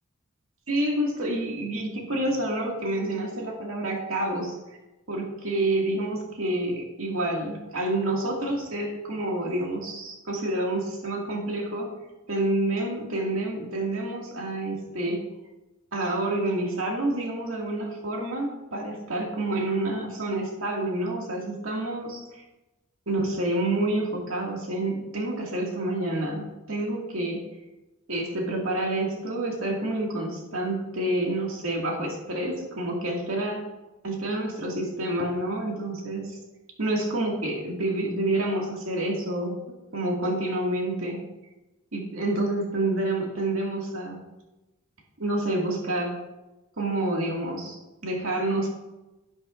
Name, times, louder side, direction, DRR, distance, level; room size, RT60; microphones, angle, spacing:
voice 1, 0.7-4.6 5.1-11.9 12.3-15.2 15.9-22.4 23.1-27.4 28.1-33.6 34.0-36.4 36.8-41.2 41.9-44.2 45.2-46.2 46.8-48.7, right 1 dB, 85° right, -1 dB, 2.2 m, -28 dB
10.5 x 10.0 x 2.6 m, 1.0 s
head